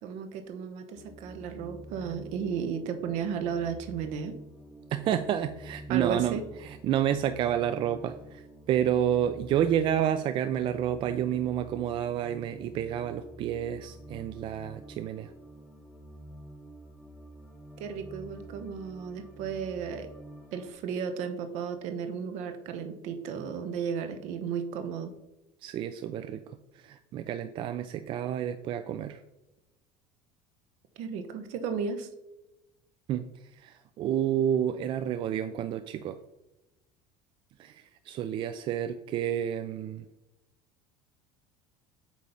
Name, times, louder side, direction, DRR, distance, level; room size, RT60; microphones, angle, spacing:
voice 1, 0.0-4.4 5.9-6.4 17.8-20.1 20.5-25.1 31.0-32.1, right 6 dB, 65° right, 8 dB, 1.0 m, -34 dB
sound 1, 0.9-20.7, right 1 dB, 10° left, 1.9 m, -48 dB
voice 2, 4.9-15.3 25.6-29.2 33.1-36.2 37.6-40.1, right 10 dB, 40° right, 10 dB, 0.4 m, -30 dB
8.3 x 3.2 x 5.4 m, 0.97 s
cardioid pair, 145°, 13 cm